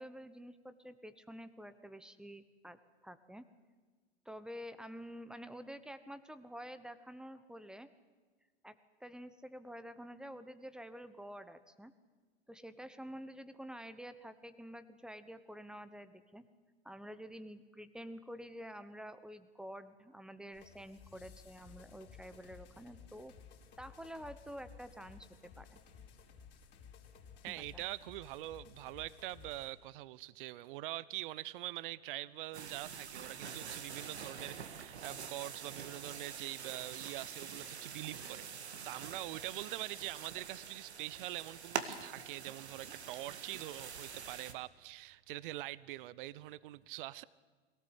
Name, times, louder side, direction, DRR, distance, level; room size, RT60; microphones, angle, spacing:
voice 1, 0.0-3.4 4.2-7.9 8.6-11.9 12.5-16.4 16.8-23.3 23.8-25.8 27.5-27.8, equal, ahead, 12 dB, 1.1 m, -49 dB
sound 1, 20.5-29.7, left 6 dB, 35° left, 4.4 m, -57 dB
voice 2, 27.4-47.2, right 16 dB, 50° right, 20 dB, 0.7 m, -44 dB
sound 2, 32.5-44.5, right 6 dB, 80° right, 1.8 m, -45 dB
22.0 x 17.5 x 8.2 m, 1.4 s
hypercardioid pair, 105°, 33 cm